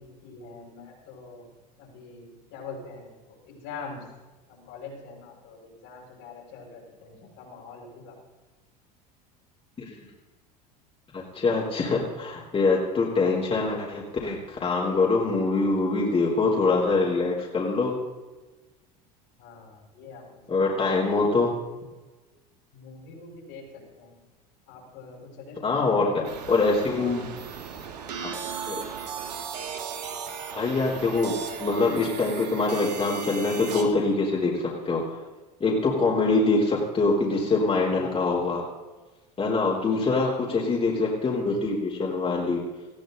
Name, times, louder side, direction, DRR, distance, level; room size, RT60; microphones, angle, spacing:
voice 1, 0.0-1.5 1.8-4.0 4.5-8.1 19.4-20.4 22.7-24.2 24.7-26.4 37.9-38.2, left 4 dB, 70° left, -2 dB, 6.7 m, -44 dB
voice 2, 11.1-18.0 20.5-21.5 25.6-26.1 26.5-27.3 28.2-28.3 28.7-28.8 30.5-31.3 31.6-35.2 35.6-38.6 39.4-42.6, left 3 dB, 30° left, -3 dB, 3.6 m, -24 dB
sound 1, 26.2-33.8, right 7 dB, 85° right, 1.8 m, -36 dB
19.0 x 14.5 x 3.9 m, 1.2 s
hypercardioid pair, 80°, 21 cm